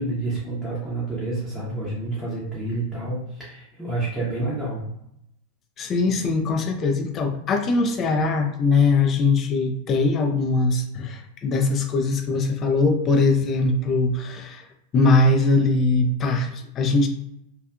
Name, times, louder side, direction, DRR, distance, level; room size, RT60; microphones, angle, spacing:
voice 1, 0.0-4.8, right 2 dB, 5° left, -9 dB, 0.7 m, -29 dB
voice 2, 5.8-14.6 14.9-17.1, left 3 dB, 30° left, 4 dB, 0.4 m, -21 dB
2.5 x 2.2 x 2.3 m, 0.79 s
figure-of-eight pair, 90°, 0 cm